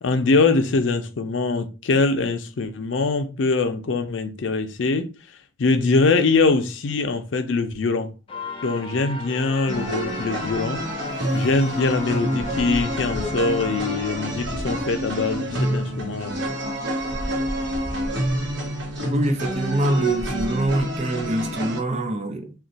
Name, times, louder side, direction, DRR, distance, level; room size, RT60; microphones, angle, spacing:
voice 1, 0.0-5.1 5.6-8.1 8.6-11.1 11.3-16.4, left 3 dB, 85° left, 0.5 m, -23 dB
sound 1, 8.3-14.9, left 4 dB, 30° left, 0.4 m, -36 dB
sound 2, 9.7-21.8, equal, 80° right, 1.0 m, -28 dB
voice 2, 19.1-22.5, right 1 dB, 35° right, 0.5 m, -24 dB
2.5 x 2.2 x 3.9 m
head